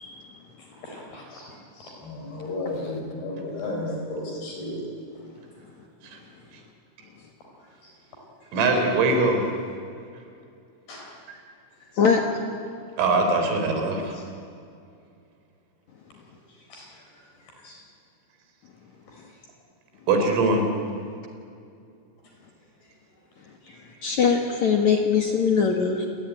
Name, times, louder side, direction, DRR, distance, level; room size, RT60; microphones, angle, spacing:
voice 1, 0.7-4.8 7.6-7.9 10.9-11.2 11.8-12.0 14.1-14.2 16.5-17.2 17.6-17.8 19.1-19.2 22.8-22.9 23.6-24.1, left 2 dB, 50° left, 0 dB, 5.8 m, -36 dB
voice 2, 8.5-9.4 11.3-11.4 13.0-14.1 20.1-20.7, right 3 dB, 80° right, 4 dB, 6.1 m, -22 dB
voice 3, 24.0-26.1, left 6 dB, 70° left, 3 dB, 1.7 m, -21 dB
29.0 x 20.5 x 9.2 m, 2.5 s
omnidirectional pair, 5.9 m